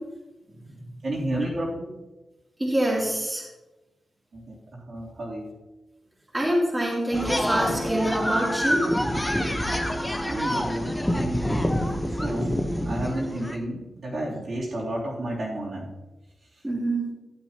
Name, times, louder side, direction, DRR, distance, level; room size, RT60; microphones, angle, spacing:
voice 1, 1.0-1.9 4.3-5.5 10.2-11.6 12.2-12.6 12.8-15.9, right 1 dB, 50° right, -6 dB, 3.2 m, -31 dB
voice 2, 2.6-3.4 6.3-8.8 16.6-17.1, right 1 dB, 10° right, -6 dB, 3.1 m, -25 dB
sound 1, 7.1-13.6, equal, 10° left, 1.0 m, -27 dB
12.5 x 12.0 x 2.9 m, 1.1 s
wide cardioid pair, 155°, 0 cm